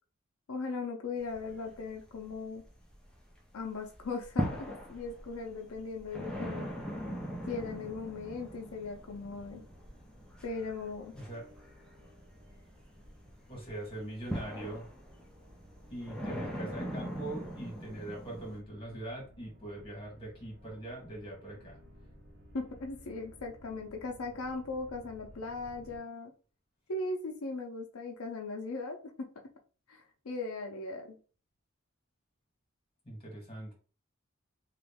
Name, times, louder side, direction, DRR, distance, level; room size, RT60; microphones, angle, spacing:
voice 1, 0.5-2.6 3.5-6.7 7.5-9.6 10.4-11.1 22.5-26.3 26.9-29.3 29.9-31.2, left 3 dB, 90° left, 3 dB, 0.5 m, -38 dB
sound 1, 1.2-3.3 3.7-18.6, equal, 5° left, 0.5 m, -41 dB
sound 2, 6.8-26.0, equal, 50° right, 1.0 m, -57 dB
voice 2, 11.1-11.5 13.5-14.9 15.9-21.8 33.0-33.7, right 1 dB, 25° left, -1 dB, 1.5 m, -42 dB
3.0 x 2.4 x 3.4 m, 0.38 s
head